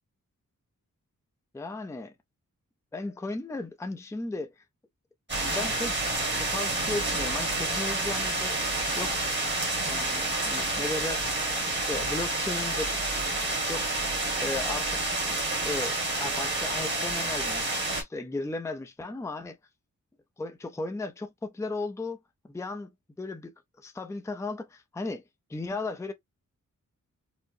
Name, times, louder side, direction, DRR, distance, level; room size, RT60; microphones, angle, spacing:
voice 1, 1.5-2.1 2.9-4.5 5.5-8.7 9.0-9.2 9.8-11.3 11.7-13.4 13.7-13.9 14.4-15.0 15.6-19.6 20.4-22.2 22.5-22.9 23.2-23.5 23.8-25.2 25.5-26.1, left 2 dB, 10° left, 0.5 m, -35 dB
sound 1, 5.3-18.0, right 2 dB, 35° right, 1.7 m, -29 dB
4.5 x 2.1 x 2.6 m
wide cardioid pair, 130°, 32 cm